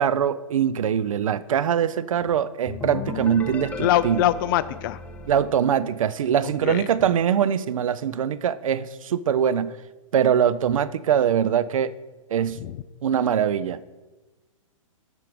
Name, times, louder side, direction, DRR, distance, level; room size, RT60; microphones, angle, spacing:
voice 1, 0.0-4.2 5.3-9.8 10.1-11.9 12.3-12.6 13.0-13.9, right 8 dB, 75° right, 16 dB, 0.5 m, -23 dB
sound 1, 2.7-6.4, left 3 dB, 10° left, 0.7 m, -35 dB
voice 2, 3.8-5.0 6.6-6.9 12.6-12.7, left 13 dB, 40° left, 16 dB, 0.4 m, -23 dB
13.5 x 4.6 x 5.1 m, 1.2 s
hypercardioid pair, 130°, 17 cm